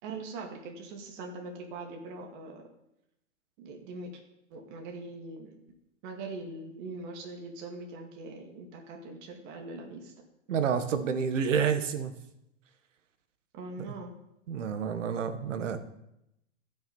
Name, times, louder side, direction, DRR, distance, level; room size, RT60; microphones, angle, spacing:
voice 1, 0.0-2.6 3.6-4.1 4.5-5.5 6.0-10.1 13.5-14.1, right 3 dB, 40° right, 2 dB, 2.3 m, -42 dB
voice 2, 10.5-12.1 13.9-14.0 14.5-15.8, right 6 dB, 75° right, 9 dB, 1.6 m, -29 dB
14.5 x 6.5 x 5.4 m, 0.83 s
hypercardioid pair, 135°, 38 cm